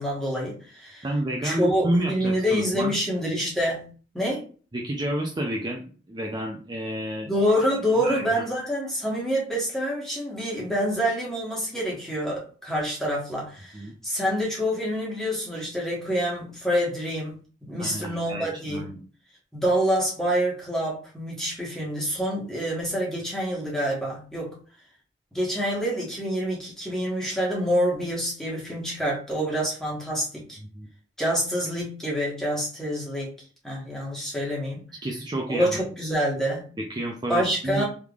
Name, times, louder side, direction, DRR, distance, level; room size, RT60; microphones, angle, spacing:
voice 1, 0.0-1.0 1.4-3.9 4.1-4.4 7.2-18.9 19.5-24.5 25.3-30.6 31.2-33.3 33.6-34.8 35.5-36.7 37.3-37.8, equal, 5° left, -4 dB, 1.3 m, -27 dB
voice 2, 1.0-3.0 4.7-7.3 8.0-8.5 13.7-13.9 17.8-19.0 30.7-30.9 35.0-35.8 36.8-37.8, right 1 dB, 25° right, 0 dB, 0.4 m, -30 dB
3.5 x 3.1 x 2.4 m, 0.39 s
head